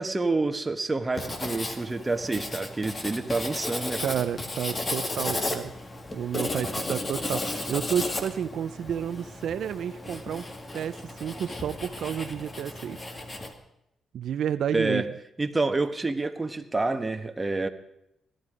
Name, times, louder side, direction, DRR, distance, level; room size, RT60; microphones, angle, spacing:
voice 1, 0.0-4.0 14.7-15.1 15.4-17.7, right 3 dB, 20° right, 7 dB, 1.3 m, -28 dB
Writing, 1.1-13.5, left 2 dB, 30° left, 2.0 m, -34 dB
voice 2, 4.0-5.7 6.1-10.4 10.7-13.1 14.1-15.1, right 9 dB, 70° right, 11 dB, 0.5 m, -31 dB
17.0 x 12.5 x 5.0 m, 0.79 s
cardioid pair, 80°, 0 cm